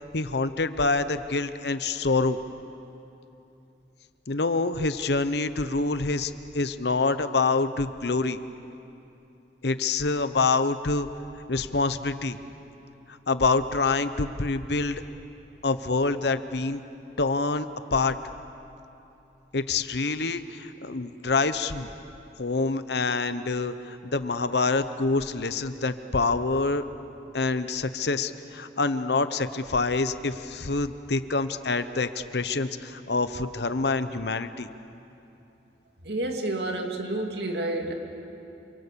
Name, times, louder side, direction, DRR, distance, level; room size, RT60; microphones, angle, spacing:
voice 1, 0.1-2.4 4.3-8.4 9.6-11.1 11.5-12.4 13.3-15.0 15.6-16.8 17.2-18.2 19.5-21.9 22.4-26.8 27.3-34.7, left 3 dB, 65° left, 11 dB, 0.9 m, -26 dB
voice 2, 36.0-37.9, right 2 dB, 65° right, 3 dB, 2.5 m, -29 dB
28.0 x 25.5 x 7.0 m, 2.8 s
head